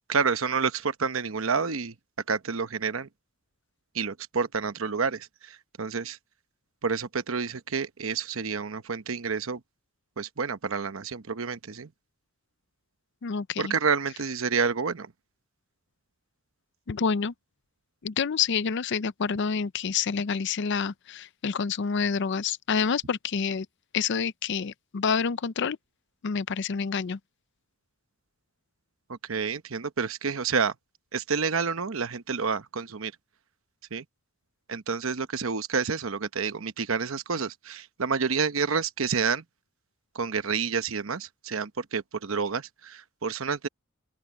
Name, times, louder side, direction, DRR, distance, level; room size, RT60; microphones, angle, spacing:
voice 1, 0.1-1.9 2.3-3.1 3.9-6.2 6.8-9.6 10.2-11.9 13.6-15.1 29.1-30.7 31.1-33.1 33.9-34.0 34.7-39.4 40.1-43.7, right 5 dB, 70° right, 0.9 m, -29 dB
voice 2, 13.2-13.7 16.9-17.3 18.0-23.7 23.9-25.8 26.2-27.2, left 6 dB, 55° left, 0.5 m, -28 dB
open air
head